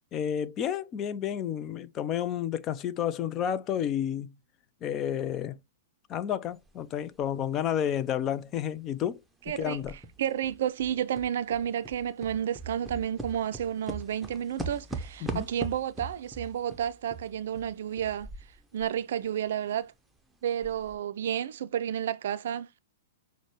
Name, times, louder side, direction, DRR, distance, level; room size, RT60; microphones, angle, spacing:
voice 1, 0.1-4.3 4.8-5.6 6.1-9.2 9.6-9.9 15.2-15.5, left 9 dB, 30° left, 0.4 m, -31 dB
sound 1, 6.7-6.8 7.2-9.1 9.5-19.0 19.2-19.3 19.9-20.0 20.5-21.0, right 2 dB, 5° right, 0.7 m, -41 dB
voice 2, 9.5-9.8 10.2-18.3 18.7-19.9 20.4-22.8, right 10 dB, 60° right, 0.4 m, -31 dB
6.1 x 2.1 x 3.1 m
figure-of-eight pair, 105°, 0 cm